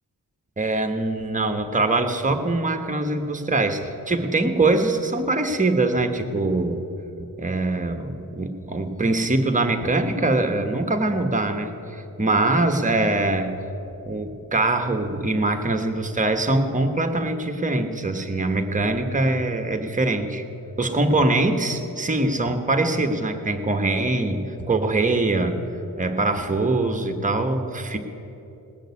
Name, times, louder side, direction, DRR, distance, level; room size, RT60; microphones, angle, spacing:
voice 1, 0.6-6.9 7.4-13.5 14.0-20.4 20.8-25.6 26.0-28.0, right 2 dB, 20° right, 6 dB, 1.2 m, -23 dB
19.0 x 6.5 x 9.6 m, 2.9 s
wide cardioid pair, 105°, 35 cm